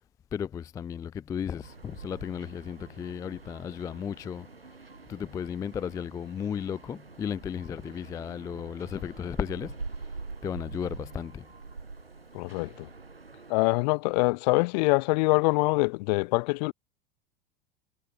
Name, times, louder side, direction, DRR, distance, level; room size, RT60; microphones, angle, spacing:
voice 1, 0.3-4.5 5.1-9.7 10.4-11.5, left 8 dB, 10° left, 0.3 m, -34 dB
sound 1, 1.6-13.5, right 3 dB, 85° right, 2.8 m, -45 dB
voice 2, 12.3-12.9 13.5-16.7, left 26 dB, 45° left, 0.8 m, -24 dB
figure-of-eight pair, 85°, 29 cm